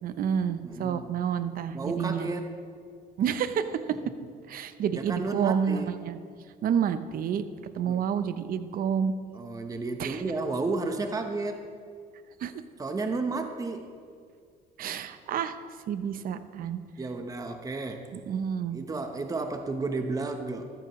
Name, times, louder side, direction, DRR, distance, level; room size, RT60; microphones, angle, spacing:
voice 1, 0.0-2.3 3.2-4.0 4.5-6.2 6.6-7.4 7.7-9.1 10.0-10.2 12.4-12.5 14.8-15.6 15.9-16.8 18.1-18.8, right 8 dB, 60° right, 11 dB, 0.8 m, -29 dB
voice 2, 0.6-1.1 1.7-2.5 4.9-6.0 7.8-8.0 9.3-11.6 12.8-13.9 17.0-18.1 18.7-20.7, right 3 dB, 20° right, 6 dB, 0.9 m, -32 dB
14.0 x 13.5 x 3.1 m, 2.2 s
cardioid pair, 110°, 17 cm